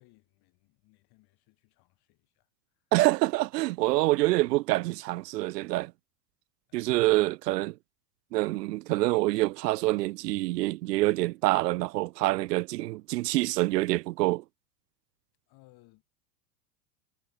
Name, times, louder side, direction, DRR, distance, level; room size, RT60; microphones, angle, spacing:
voice 1, 0.0-2.5 2.7-2.9 6.7-6.9 15.5-16.0, left 22 dB, 50° left, 7.4 m, -62 dB
voice 2, 2.9-5.9 6.7-7.8 8.3-14.4, right 19 dB, 85° right, 0.6 m, -26 dB
supercardioid pair, 115°, 47 cm